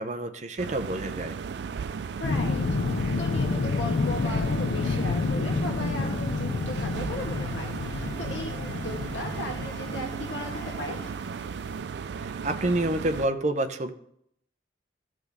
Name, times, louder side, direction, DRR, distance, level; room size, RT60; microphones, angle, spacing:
voice 1, 0.0-1.4 12.2-13.9, right 1 dB, 40° right, 8 dB, 0.7 m, -28 dB
sound 1, 0.6-13.3, right 6 dB, 65° right, 0.3 m, -36 dB
voice 2, 2.2-11.0, left 1 dB, 80° left, 1 dB, 1.9 m, -37 dB
sound 2, 2.2-10.4 11.8-11.9, left 4 dB, 65° left, 0.4 m, -29 dB
sound 3, 4.7-11.1, right 1 dB, 20° left, 3.9 m, -47 dB
14.5 x 6.1 x 3.5 m, 0.72 s
head